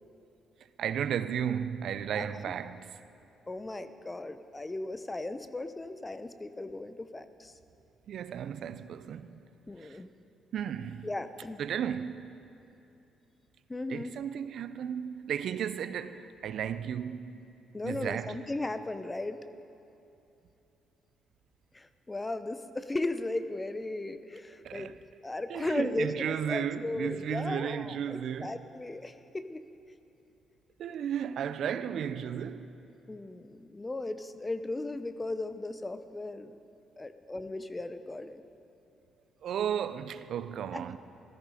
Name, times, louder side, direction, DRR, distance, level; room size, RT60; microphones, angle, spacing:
voice 1, 0.8-2.9 8.1-9.4 9.8-10.0 10.5-11.1 11.6-12.3 13.9-17.3 17.8-18.4 24.6-24.9 25.5-28.6 30.8-32.7 39.4-41.0, right 8 dB, 70° right, 0.5 m, -34 dB
voice 2, 3.5-7.5 9.7-10.1 11.0-11.6 13.7-14.1 17.7-19.4 21.7-24.9 25.2-29.6 32.0-32.1 33.1-36.6 37.0-38.4 40.7-40.8, left 2 dB, 20° left, 0.7 m, -36 dB
16.0 x 13.5 x 5.0 m
cardioid pair, 90°, 0 cm